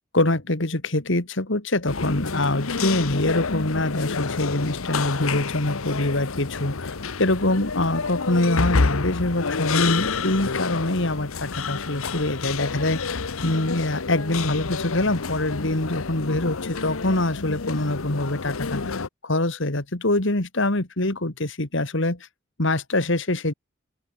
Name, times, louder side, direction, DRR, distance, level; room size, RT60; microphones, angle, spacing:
voice 1, 0.1-6.9 7.2-22.2 22.6-23.5, left 2 dB, 60° left, 2.3 m, -24 dB
sound 1, 1.9-19.1, left 4 dB, 80° left, 1.0 m, -29 dB
open air
head